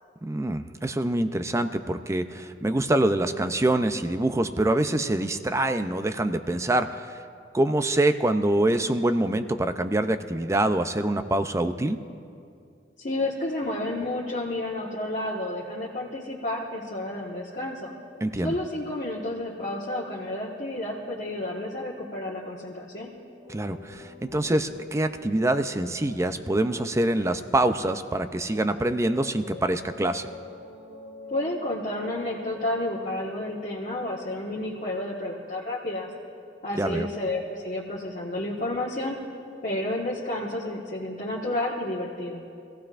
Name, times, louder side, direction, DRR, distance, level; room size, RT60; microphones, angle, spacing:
voice 1, 0.2-7.1 7.5-12.0 18.2-18.5 23.5-30.3 36.8-37.1, right 1 dB, 15° right, 9 dB, 0.5 m, -25 dB
voice 2, 13.0-17.9 18.4-23.1 31.3-36.1 36.6-39.2 39.6-42.4, left 1 dB, 45° left, -5 dB, 1.4 m, -31 dB
sound 1, 23.4-35.0, left 2 dB, 30° right, 1.1 m, -47 dB
24.5 x 15.5 x 2.5 m, 2.4 s
head